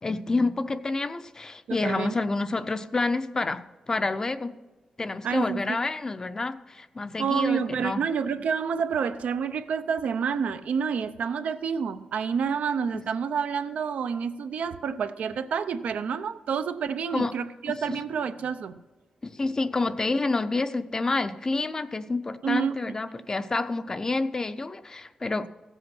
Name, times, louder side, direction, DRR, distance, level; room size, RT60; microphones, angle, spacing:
voice 1, 0.0-4.5 5.0-8.0 12.9-13.0 17.1-17.3 17.7-18.0 19.2-25.5, left 3 dB, 25° left, 11 dB, 0.6 m, -28 dB
voice 2, 1.7-2.2 5.2-5.6 7.2-18.7 22.4-22.8, right 6 dB, 80° right, 10 dB, 0.6 m, -28 dB
15.5 x 7.8 x 6.1 m, 1.2 s
wide cardioid pair, 140°, 2 cm